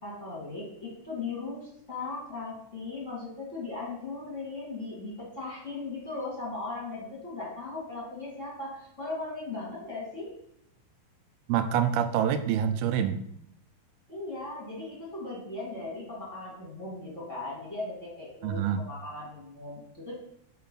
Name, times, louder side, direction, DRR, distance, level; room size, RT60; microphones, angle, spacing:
voice 1, 0.0-10.4 14.1-20.1, left 3 dB, 20° left, -6 dB, 2.6 m, -38 dB
voice 2, 11.5-13.2 18.4-18.8, right 9 dB, 85° right, 9 dB, 2.6 m, -26 dB
5.7 x 5.7 x 5.6 m, 0.74 s
omnidirectional pair, 4.4 m